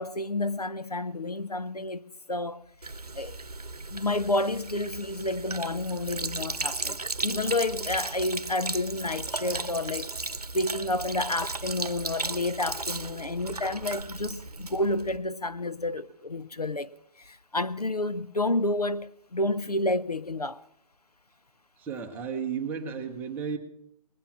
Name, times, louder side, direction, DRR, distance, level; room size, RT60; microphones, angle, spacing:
voice 1, 0.0-2.0 2.3-2.6 3.1-3.4 3.9-7.0 7.2-10.1 10.5-16.9 17.2-20.6, left 2 dB, 90° left, 0.7 m, -30 dB
Sink (filling or washing), 2.8-15.2, right 3 dB, 80° right, 0.8 m, -35 dB
voice 2, 21.8-23.6, right 6 dB, 10° right, 0.9 m, -33 dB
20.5 x 8.8 x 5.8 m
figure-of-eight pair, 140°, 19 cm